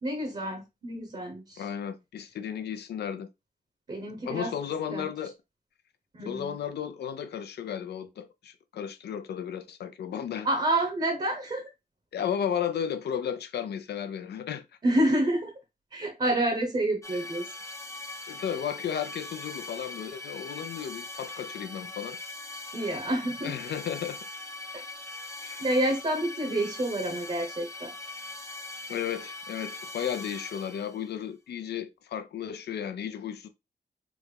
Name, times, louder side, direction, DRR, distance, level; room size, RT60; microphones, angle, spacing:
voice 1, 0.0-1.6 3.9-4.5 4.9-5.1 6.1-6.6 10.4-11.7 14.8-15.5 15.9-17.5 22.7-23.5 25.6-27.9, right 1 dB, 40° right, 1.0 m, -28 dB
voice 2, 1.6-3.3 4.3-5.3 6.2-10.5 12.1-14.6 18.3-22.2 23.4-24.2 25.4-25.6 28.9-33.5, left 8 dB, 80° left, 0.5 m, -34 dB
sound 1, 17.0-31.1, left 2 dB, 15° left, 0.5 m, -41 dB
3.5 x 2.1 x 3.2 m
cardioid pair, 75°, 17 cm